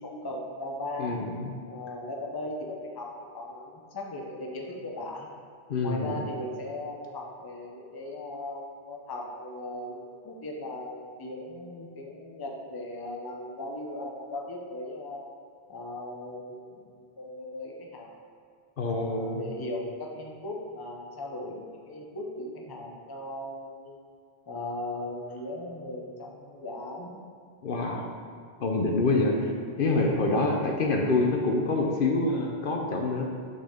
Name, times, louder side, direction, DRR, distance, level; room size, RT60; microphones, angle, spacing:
voice 1, 0.0-1.2 1.7-3.1 3.3-5.3 5.8-15.3 15.7-18.2 18.9-24.0 24.5-27.1, left 1 dB, 25° left, -1 dB, 0.7 m, -38 dB
voice 2, 1.0-1.5 5.7-6.2 18.8-19.4 27.6-28.1 28.6-29.5 29.8-33.2, left 2 dB, 60° left, 0 dB, 0.8 m, -26 dB
6.5 x 4.1 x 5.0 m, 2.3 s
omnidirectional pair, 1.1 m